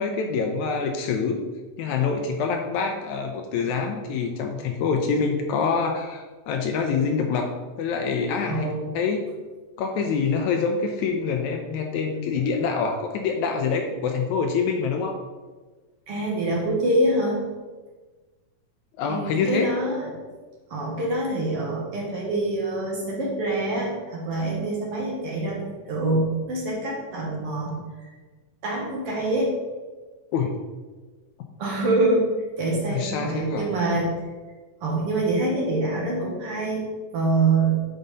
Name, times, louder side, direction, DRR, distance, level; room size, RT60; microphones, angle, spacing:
voice 1, 0.0-1.4 1.8-9.3 9.8-15.2 19.0-19.7 30.3-30.6 32.9-33.7, left 5 dB, 75° left, 4 dB, 1.9 m, -26 dB
voice 2, 8.4-8.9 16.1-17.4 19.1-20.2 20.7-27.8 28.6-29.5 31.6-32.3 32.6-34.2 34.8-36.8 37.1-37.9, right 2 dB, 55° right, -3 dB, 2.0 m, -25 dB
9.1 x 5.3 x 4.1 m, 1.3 s
omnidirectional pair, 3.7 m